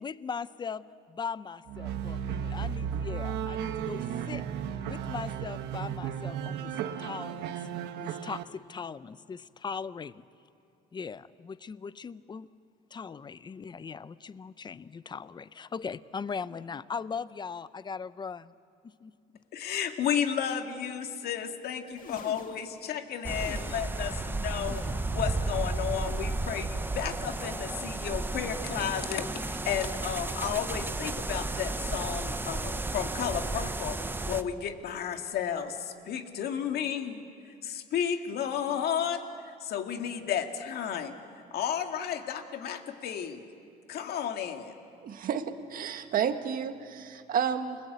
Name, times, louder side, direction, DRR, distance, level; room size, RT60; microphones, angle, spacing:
voice 1, 0.0-4.4 4.8-7.7 8.0-10.2 10.9-12.5 12.9-18.5 18.8-19.1, left 5 dB, 25° left, 16 dB, 0.6 m, -39 dB
sound 1, 1.7-8.4, right 8 dB, 85° right, 1.4 m, -34 dB
voice 2, 19.5-24.8 25.1-34.0 34.2-37.2 37.6-41.1 41.5-43.4 43.9-44.8, left 8 dB, 70° left, 5 dB, 2.1 m, -33 dB
sound 2, 21.8-24.2 24.4-25.4 25.7-26.7 27.1-28.0 28.4-29.2 29.7-30.4 31.1-31.6 32.4-32.9 33.7-34.1 35.0-35.4 36.3-36.5 37.7-37.8, left 6 dB, 50° left, 2.0 m, -50 dB
sound 3, 23.2-34.4, right 2 dB, 10° right, 0.9 m, -33 dB
voice 3, 45.0-47.8, right 8 dB, 55° right, 7 dB, 1.7 m, -31 dB
29.5 x 20.5 x 8.1 m, 2.5 s
cardioid pair, 110°, 17 cm